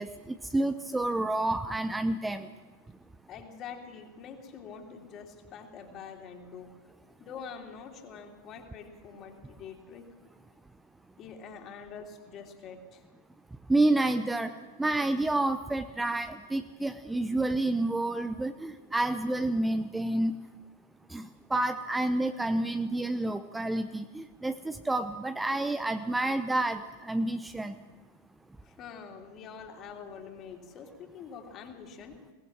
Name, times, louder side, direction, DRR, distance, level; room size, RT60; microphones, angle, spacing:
voice 1, 0.0-2.5 13.7-20.4 21.1-27.7, right 2 dB, 10° right, 9 dB, 0.7 m, -29 dB
voice 2, 3.3-6.8 7.2-10.1 11.2-13.0 28.6-32.2, left 6 dB, 30° left, 3 dB, 3.1 m, -45 dB
22.5 x 18.5 x 7.5 m, 1.2 s
figure-of-eight pair, 90°, 0 cm